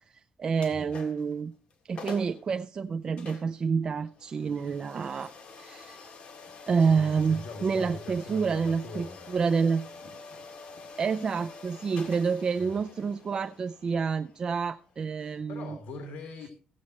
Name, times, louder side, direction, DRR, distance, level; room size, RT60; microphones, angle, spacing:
voice 1, 0.1-1.5 1.9-5.3 5.6-6.1 6.7-9.9 11.0-15.8, right 5 dB, 30° right, 0.4 m, -28 dB
sound 1, 0.6-1.3 1.7-1.8 2.0-2.4 3.2-15.9, left 4 dB, 50° left, 2.3 m, -47 dB
voice 2, 6.6-9.4 12.6-12.8 15.2-16.5, left 3 dB, 85° left, 1.8 m, -42 dB
16.5 x 8.5 x 3.0 m
cardioid pair, 160°, 3 cm